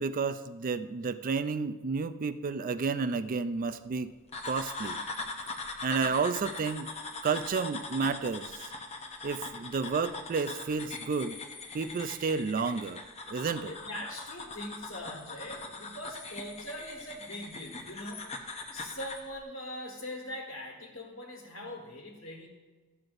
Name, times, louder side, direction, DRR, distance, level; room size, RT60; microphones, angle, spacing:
voice 1, 0.0-4.1 4.4-5.0 5.8-6.9 7.2-8.7 9.2-11.4 11.7-13.0 13.3-13.7, right 5 dB, 40° right, 12 dB, 0.4 m, -31 dB
sound 1, 4.3-19.3, left 3 dB, 30° left, 0.8 m, -41 dB
voice 2, 13.6-18.3 18.7-22.5, left 1 dB, 60° left, -1 dB, 1.4 m, -42 dB
13.5 x 7.8 x 2.6 m, 1.3 s
head